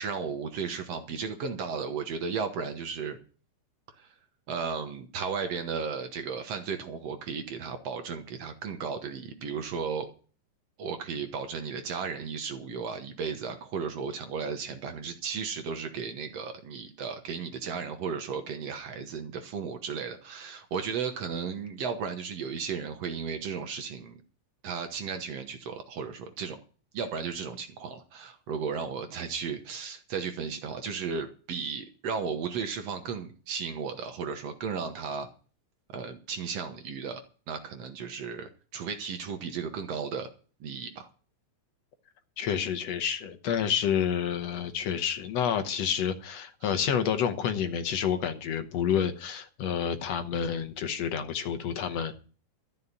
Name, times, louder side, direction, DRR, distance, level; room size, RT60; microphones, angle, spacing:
voice 1, 0.0-3.2 4.0-4.1 4.5-10.1 10.8-24.2 24.6-26.6 26.9-35.3 35.9-37.2 37.5-40.3 40.6-41.1 46.6-46.7, right 6 dB, 60° right, 2.0 m, -35 dB
voice 2, 42.4-52.1, left 8 dB, 65° left, 1.9 m, -29 dB
13.5 x 5.6 x 9.5 m
omnidirectional pair, 3.7 m